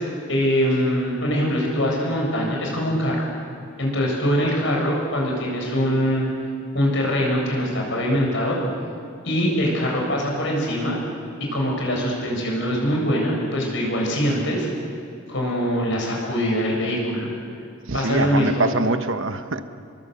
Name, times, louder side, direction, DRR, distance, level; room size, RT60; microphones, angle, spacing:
voice 1, 0.3-3.3 3.8-6.2 6.7-8.6 9.2-11.0 11.5-14.7 15.3-17.3 17.9-18.7, equal, 55° left, -1 dB, 7.7 m, -23 dB
voice 2, 17.9-19.6, right 3 dB, 65° right, 9 dB, 1.2 m, -24 dB
29.0 x 22.5 x 8.3 m, 2.4 s
head